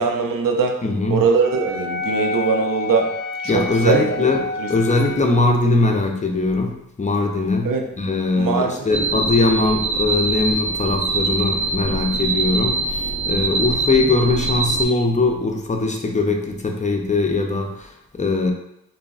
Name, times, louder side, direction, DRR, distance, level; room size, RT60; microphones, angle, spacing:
voice 1, 0.0-0.8 1.1-3.1 3.4-4.3 4.6-4.7 7.6-7.8 8.4-9.1, right 5 dB, 80° right, 3 dB, 0.5 m, -21 dB
voice 2, 0.8-1.3 3.4-4.4 4.7-18.5, left 3 dB, 25° left, 2 dB, 0.4 m, -21 dB
Wind instrument woodwind instrument, 1.4-5.3, left 4 dB, 80° left, 0.5 m, -29 dB
sound 1, 8.9-14.8, right 3 dB, 40° right, 0.7 m, -23 dB
3.4 x 2.0 x 2.3 m, 0.80 s
cardioid pair, 40°, 33 cm